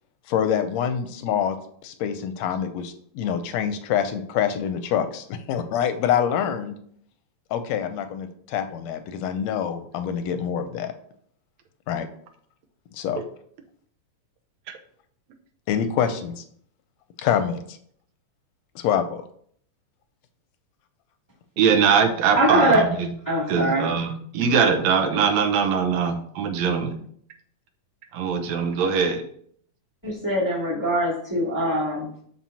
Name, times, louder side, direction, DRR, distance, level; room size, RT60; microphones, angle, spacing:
voice 1, 0.3-1.6 1.8-6.8 7.5-10.9 11.9-12.1 12.9-13.2 15.7-16.4 17.2-17.8 18.7-19.2, left 8 dB, 80° left, 10 dB, 1.7 m, -26 dB
voice 2, 21.6-23.1 23.5-26.9 28.1-29.2, right 6 dB, 75° right, 5 dB, 2.1 m, -22 dB
voice 3, 22.4-22.8 23.3-23.9 30.0-32.2, right 1 dB, 5° right, -8 dB, 2.3 m, -22 dB
12.0 x 4.3 x 2.8 m, 0.63 s
omnidirectional pair, 3.3 m